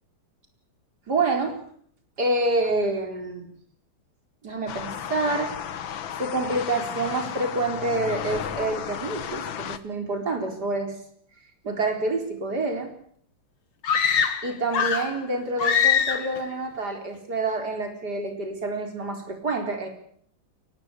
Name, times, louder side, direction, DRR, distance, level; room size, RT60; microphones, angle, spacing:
voice 1, 1.1-1.6 2.2-3.5 4.4-5.5 6.2-11.0 11.6-12.9 14.4-19.9, right 2 dB, 50° right, 4 dB, 4.7 m, -27 dB
sound 1, 4.7-9.8, left 9 dB, 70° left, 1.9 m, -34 dB
sound 2, 13.8-15.2 15.6-16.4, left 7 dB, 85° left, 2.6 m, -23 dB
23.0 x 19.0 x 8.3 m, 0.62 s
omnidirectional pair, 2.3 m